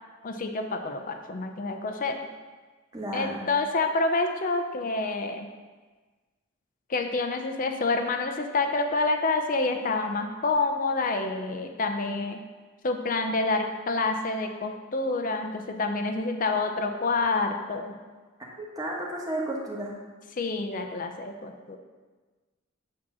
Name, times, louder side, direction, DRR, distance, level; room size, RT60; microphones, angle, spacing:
voice 1, 0.2-2.2 3.1-5.5 6.9-12.4 12.8-18.0 20.4-21.8, left 3 dB, 40° left, 5 dB, 0.5 m, -28 dB
voice 2, 2.9-3.5 18.6-20.0, right 1 dB, 15° right, -3 dB, 1.2 m, -33 dB
8.6 x 2.9 x 6.1 m, 1.3 s
head